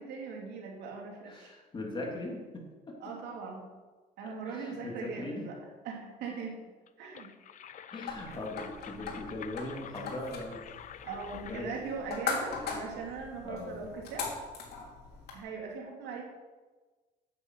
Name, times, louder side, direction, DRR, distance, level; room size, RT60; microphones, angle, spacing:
voice 1, 0.0-1.5 3.0-3.7 4.2-5.6 5.8-6.6 7.0-7.3 11.0-14.3 15.3-16.2, right 5 dB, 85° right, 0 dB, 2.8 m, -40 dB
voice 2, 1.3-3.1 4.2-5.5 7.9-10.6 11.3-11.7 13.4-13.9, left 2 dB, 30° left, -1 dB, 3.0 m, -40 dB
sound 1, 6.9-11.8, left 9 dB, 50° left, 0.7 m, -48 dB
sound 2, 8.1-15.4, left 5 dB, 70° left, 2.9 m, -40 dB
9.2 x 7.6 x 7.7 m, 1.3 s
cardioid pair, 110°, 17 cm